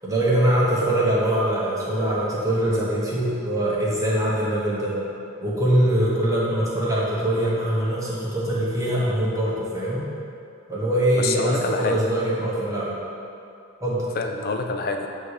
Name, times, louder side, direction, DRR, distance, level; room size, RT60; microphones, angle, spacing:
voice 1, 0.0-4.9 5.4-10.0 10.7-12.9 13.8-14.1, right 1 dB, 15° right, -8 dB, 1.2 m, -23 dB
voice 2, 11.2-12.0 14.2-15.1, left 4 dB, 45° left, 4 dB, 0.4 m, -26 dB
7.6 x 2.8 x 4.8 m, 2.6 s
head